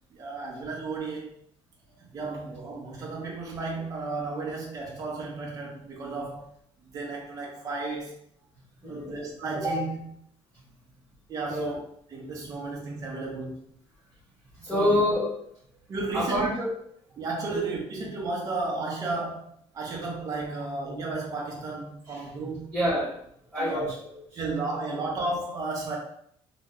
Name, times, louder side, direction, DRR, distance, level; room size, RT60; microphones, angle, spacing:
voice 1, 0.1-1.3 2.1-6.4 6.9-8.1 8.9-10.1 11.3-11.8 12.1-13.6 14.7-15.0 15.9-16.5 17.2-19.5 19.7-22.7 23.6-23.9 24.4-26.0, right 3 dB, 30° right, -2 dB, 0.6 m, -33 dB
voice 2, 8.8-9.2 11.4-11.8 14.6-15.3 16.1-16.7 17.5-17.6 20.6-20.7 22.1-22.3 22.7-23.1 23.5-24.4, left 1 dB, 5° right, -10 dB, 1.2 m, -27 dB
2.9 x 2.1 x 3.6 m, 0.69 s
cardioid pair, 160°, 11 cm